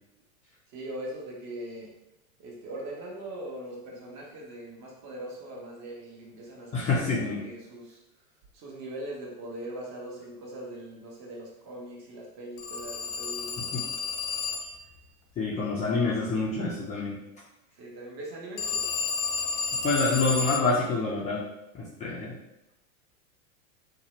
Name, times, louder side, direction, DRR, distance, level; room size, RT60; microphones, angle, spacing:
voice 1, 0.7-1.9 2.4-8.0 8.5-13.7 17.8-18.9, right 1 dB, 40° right, -2 dB, 0.9 m, -41 dB
voice 2, 6.7-7.4 13.6-13.8 15.4-17.2 19.8-21.4 21.7-22.4, left 3 dB, 20° left, -7 dB, 0.4 m, -27 dB
Telephone, 12.6-14.9 18.6-20.8, left 5 dB, 80° left, 0.7 m, -31 dB
2.8 x 2.1 x 2.9 m, 0.93 s
hypercardioid pair, 105°, 42 cm